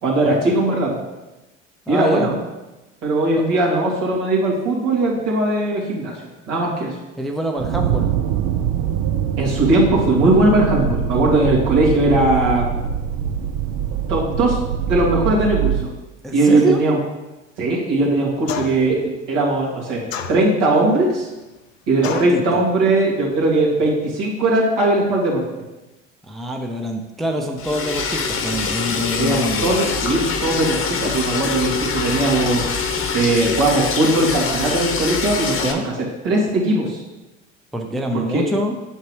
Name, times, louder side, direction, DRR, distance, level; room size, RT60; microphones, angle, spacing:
voice 1, 0.0-1.0 1.9-2.3 3.0-6.1 6.5-7.0 9.4-12.7 14.1-14.6 14.9-15.9 16.3-17.0 17.6-19.0 19.3-20.0 20.3-21.3 21.9-25.4 29.2-32.6 33.1-35.9 36.2-37.0 38.1-38.4, right 2 dB, 65° right, -4 dB, 2.6 m, -19 dB
voice 2, 1.9-2.3 7.2-8.1 16.2-16.8 22.0-22.6 26.3-29.8 35.6-35.9 37.7-38.8, equal, ahead, 2 dB, 0.6 m, -25 dB
sound 1, 7.6-15.9, right 8 dB, 50° right, 0.6 m, -23 dB
sound 2, 18.5-19.0 20.1-20.8 22.0-22.4, left 7 dB, 85° left, 0.7 m, -29 dB
Liquid, 27.6-35.7, left 5 dB, 35° left, 1.0 m, -24 dB
7.9 x 5.8 x 3.2 m, 1.1 s
hypercardioid pair, 80°, 38 cm